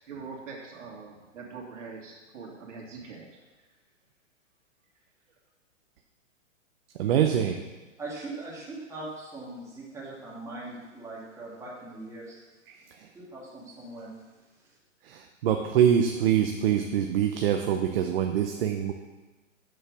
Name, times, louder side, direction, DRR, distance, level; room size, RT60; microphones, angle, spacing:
voice 1, 0.1-3.3, right 4 dB, 70° right, -2 dB, 2.7 m, -43 dB
voice 2, 7.0-7.6 12.7-12.8 15.0-18.9, right 9 dB, 50° right, 4 dB, 0.8 m, -24 dB
voice 3, 8.0-12.4 13.1-14.1, right 2 dB, 10° right, -6 dB, 2.1 m, -40 dB
6.8 x 6.5 x 6.2 m, 1.2 s
hypercardioid pair, 140°, 39 cm